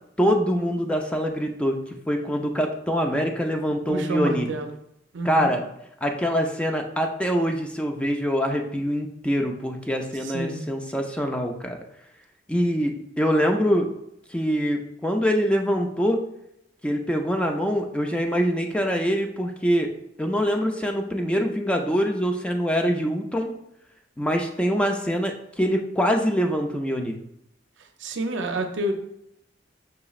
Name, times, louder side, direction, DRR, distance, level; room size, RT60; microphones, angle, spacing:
voice 1, 0.2-4.5 5.2-5.6 6.0-11.8 12.5-13.9 14.3-16.3 16.8-19.9 20.2-23.5 24.2-27.2, equal, 5° left, 3 dB, 0.4 m, -24 dB
voice 2, 3.9-4.8 5.1-5.5 10.2-10.6 28.0-28.9, right 1 dB, 75° right, 5 dB, 0.5 m, -28 dB
5.7 x 3.0 x 2.4 m, 0.77 s
head